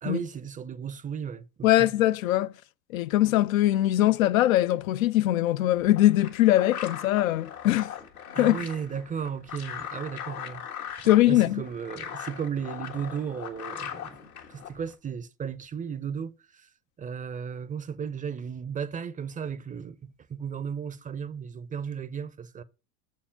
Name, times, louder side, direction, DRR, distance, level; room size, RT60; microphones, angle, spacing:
voice 1, 0.0-1.9 8.3-10.6 11.0-16.7 17.0-22.6, right 7 dB, 20° right, 0.5 m, -35 dB
voice 2, 1.6-2.5 2.9-7.9 8.4-8.6 11.1-11.6, left 15 dB, 70° left, 0.5 m, -22 dB
sound 1, 5.7-14.9, left 9 dB, 85° left, 1.6 m, -40 dB
7.0 x 4.6 x 5.7 m
hypercardioid pair, 80°, 42 cm